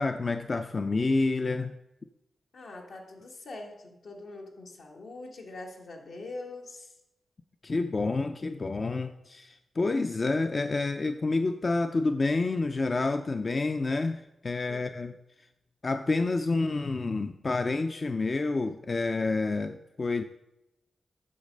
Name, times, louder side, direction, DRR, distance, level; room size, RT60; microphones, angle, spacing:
voice 1, 0.0-1.8 7.6-15.2 15.8-20.2, left 3 dB, 45° left, 8 dB, 0.4 m, -28 dB
voice 2, 2.5-6.9 14.7-15.1, left 2 dB, 80° left, 1 dB, 1.6 m, -43 dB
8.5 x 6.4 x 5.2 m, 0.89 s
cardioid pair, 75°, 0 cm